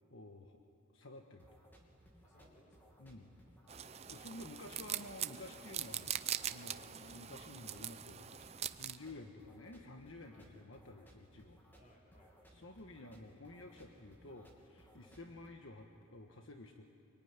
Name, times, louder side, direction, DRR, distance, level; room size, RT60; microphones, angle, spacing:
voice 1, 0.1-0.6 0.9-1.5 3.0-3.3 4.1-6.2 6.5-11.6 12.5-16.8, left 2 dB, 70° left, 3 dB, 1.4 m, -52 dB
sound 1, 1.4-15.5, equal, 10° left, 2.6 m, -63 dB
voice 2, 2.2-2.9 4.2-4.8 8.8-9.0 10.3-10.5 11.7-12.5 15.0-15.2, equal, 40° left, 0 dB, 5.1 m, -66 dB
sound 2, 3.7-9.0, right 10 dB, 30° right, 0.6 m, -42 dB
25.5 x 23.5 x 9.6 m, 2.9 s
head